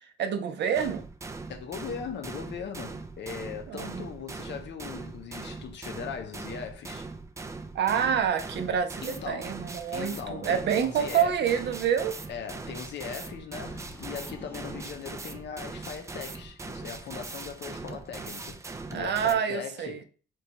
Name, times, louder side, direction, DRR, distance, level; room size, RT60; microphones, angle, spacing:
voice 1, 0.0-1.1 3.7-4.1 7.7-12.2 18.9-20.0, right 8 dB, 60° right, 0.6 m, -27 dB
sound 1, 0.7-19.3, right 3 dB, 15° right, 0.4 m, -41 dB
voice 2, 1.5-7.1 9.0-9.6 9.9-11.6 12.3-20.0, left 7 dB, 65° left, 0.7 m, -39 dB
sound 2, 13.5-16.0, equal, 10° left, 0.7 m, -48 dB
3.0 x 2.2 x 4.0 m
cardioid pair, 90°, 20 cm